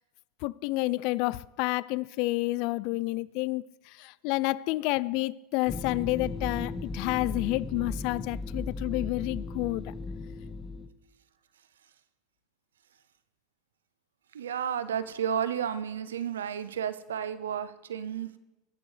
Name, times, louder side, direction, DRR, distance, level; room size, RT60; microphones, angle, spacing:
voice 1, 0.4-9.9, left 21 dB, 60° left, 0.3 m, -30 dB
sound 1, 5.7-10.9, left 3 dB, 15° left, 1.0 m, -36 dB
voice 2, 14.3-18.3, right 8 dB, 90° right, 0.6 m, -32 dB
20.5 x 7.0 x 3.3 m
hypercardioid pair, 100°, 0 cm